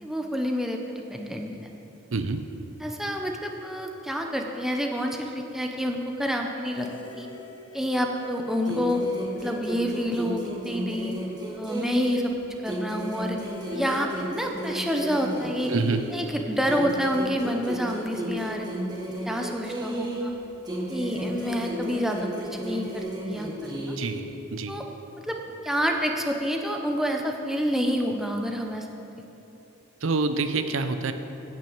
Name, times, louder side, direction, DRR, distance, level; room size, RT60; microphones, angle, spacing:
voice 1, 0.0-1.5 2.8-6.9 7.2-7.3 7.7-9.0 9.3-11.2 11.6-12.3 12.6-13.4 13.7-15.7 16.1-18.7 19.3-20.3 20.9-23.9 24.7-24.8 25.2-25.4 25.6-28.9, equal, ahead, 2 dB, 0.8 m, -28 dB
sound 1, 6.6-10.4 10.7-10.8 13.2-18.7 21.0-23.0, left 2 dB, 20° left, 1.3 m, -47 dB
sound 2, 8.7-12.4 12.7-16.3 16.7-20.4 20.7-24.3, right 1 dB, 20° right, 1.5 m, -33 dB
voice 2, 15.7-16.0 24.0-24.2 24.5-24.8 30.0-31.1, right 3 dB, 70° right, 9 dB, 0.6 m, -26 dB
10.5 x 6.3 x 8.6 m, 2.9 s
head